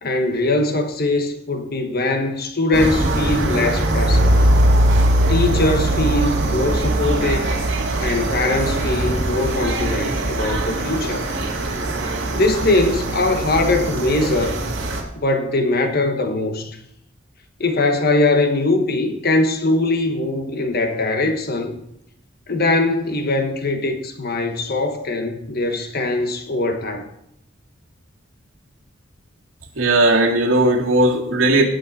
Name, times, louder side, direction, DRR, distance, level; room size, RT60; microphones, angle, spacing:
voice 1, 0.0-4.3 5.3-7.5 8.0-11.2 12.3-14.6 15.1-16.8 17.6-21.7 22.5-27.1, left 2 dB, 50° left, 1.2 m, -21 dB
sound 1, 2.7-15.0, right 1 dB, 60° right, 2.2 m, -20 dB
voice 2, 29.8-31.6, right 2 dB, 80° right, 2.0 m, -16 dB
18.5 x 7.0 x 4.1 m
head